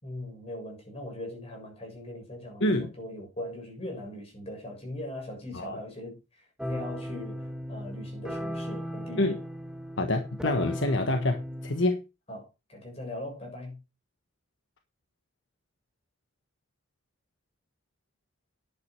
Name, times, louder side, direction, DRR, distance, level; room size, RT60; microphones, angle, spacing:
voice 1, 0.0-9.4 12.3-13.8, left 1 dB, 30° left, 7.2 m, -40 dB
voice 2, 2.6-2.9 5.5-5.8 9.2-9.4 10.0-12.0, left 1 dB, 65° left, 1.3 m, -27 dB
sound 1, 6.6-11.8, equal, 5° right, 1.2 m, -37 dB
10.5 x 8.5 x 4.7 m
head